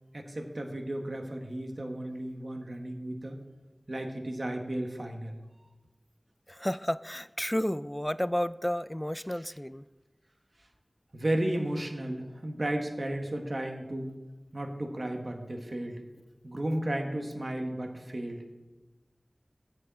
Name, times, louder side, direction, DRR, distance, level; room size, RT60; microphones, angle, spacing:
voice 1, 0.1-3.3 3.9-5.4 11.1-14.1 14.5-16.0 16.4-18.4, right 1 dB, 55° right, 3 dB, 1.5 m, -34 dB
voice 2, 6.5-9.8, equal, 15° left, 16 dB, 0.4 m, -31 dB
8.8 x 6.8 x 8.4 m, 1.1 s
wide cardioid pair, 55°, 0 cm